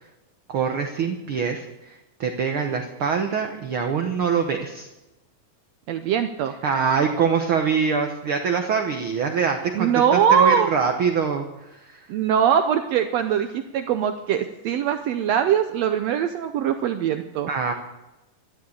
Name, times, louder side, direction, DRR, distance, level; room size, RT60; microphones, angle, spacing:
voice 1, 0.5-4.9 6.6-11.4 11.7-12.1 17.5-17.7, right 6 dB, 70° right, 5 dB, 1.3 m, -24 dB
voice 2, 5.9-6.5 9.7-10.7 12.1-17.5, right 8 dB, 85° right, 8 dB, 1.4 m, -21 dB
12.5 x 12.0 x 8.6 m, 1.0 s
omnidirectional pair, 3.9 m